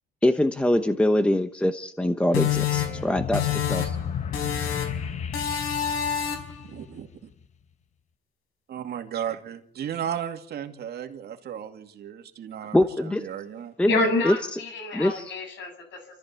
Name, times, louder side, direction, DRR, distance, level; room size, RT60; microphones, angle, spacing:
voice 1, 0.2-4.0 12.7-13.2 13.8-13.9 14.2-14.6 14.9-15.3, left 1 dB, 5° left, 8 dB, 0.9 m, -23 dB
sound 1, 2.3-4.1 4.3-5.0 5.3-6.6, left 9 dB, 85° left, 5.2 m, -27 dB
sound 2, 2.4-7.3, left 7 dB, 35° left, 1.1 m, -34 dB
voice 2, 6.7-7.1 8.7-13.7, right 9 dB, 50° right, 5 dB, 2.4 m, -35 dB
voice 3, 13.9-16.2, left 2 dB, 65° left, 5 dB, 7.3 m, -28 dB
29.0 x 14.0 x 8.3 m, 0.66 s
cardioid pair, 180°, 21 cm